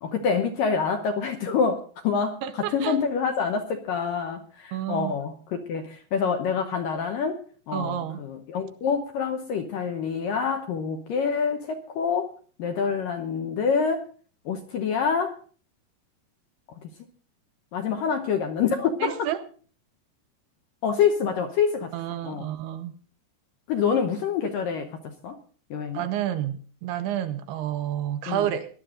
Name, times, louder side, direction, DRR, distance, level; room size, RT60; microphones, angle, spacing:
voice 1, 0.0-12.3 12.6-14.0 14.5-15.3 17.7-19.2 20.8-21.9 22.2-22.5 23.7-25.4 25.7-26.1 28.3-28.5, left 6 dB, 70° left, 2.2 m, -26 dB
voice 2, 2.4-3.0 4.7-5.1 7.7-8.2 19.0-19.4 21.9-22.9 25.9-28.7, right 11 dB, 75° right, 2.5 m, -30 dB
19.0 x 11.5 x 3.8 m
omnidirectional pair, 5.0 m